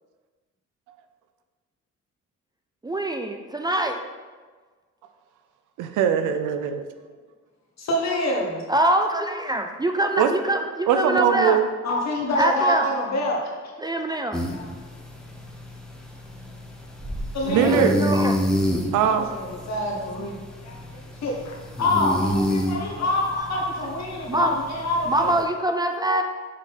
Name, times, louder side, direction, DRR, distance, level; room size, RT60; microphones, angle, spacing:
voice 1, 2.8-4.0 8.7-11.6 12.4-12.9 13.8-14.4 17.5-18.3 23.4-23.5 24.3-24.6 25.1-26.2, right 1 dB, 15° right, 4 dB, 0.4 m, -24 dB
voice 2, 5.8-6.9 10.2-10.3 10.9-11.7 17.4-18.0 18.9-19.3 20.2-20.3, right 8 dB, 85° right, 8 dB, 0.6 m, -21 dB
voice 3, 7.8-8.6 11.8-13.4 14.5-14.7 17.3-17.8 19.3-20.4 20.6-20.8 21.2-25.4, left 1 dB, 60° left, -2 dB, 1.5 m, -26 dB
sound 1, 14.3-25.4, equal, ahead, 1.1 m, -29 dB
6.4 x 3.8 x 4.2 m, 1.4 s
cardioid pair, 90°, 30 cm